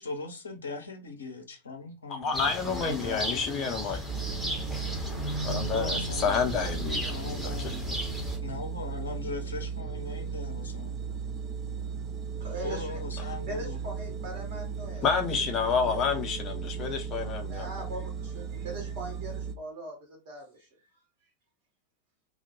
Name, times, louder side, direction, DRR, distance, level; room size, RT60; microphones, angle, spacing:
voice 1, 0.0-4.0 5.7-6.4 7.1-8.0 8.4-11.0 12.6-13.8, left 4 dB, 70° left, 0.6 m, -39 dB
voice 2, 2.1-4.0 5.4-7.7 15.0-17.7, left 6 dB, 30° left, 0.6 m, -29 dB
sound 1, 2.3-8.4, equal, ahead, 0.8 m, -35 dB
sound 2, 4.1-19.5, right 6 dB, 30° right, 0.3 m, -36 dB
voice 3, 12.4-13.0 13.5-16.0 17.4-21.0, right 2 dB, 45° right, 1.0 m, -41 dB
2.2 x 2.2 x 2.9 m
figure-of-eight pair, 90°, 0 cm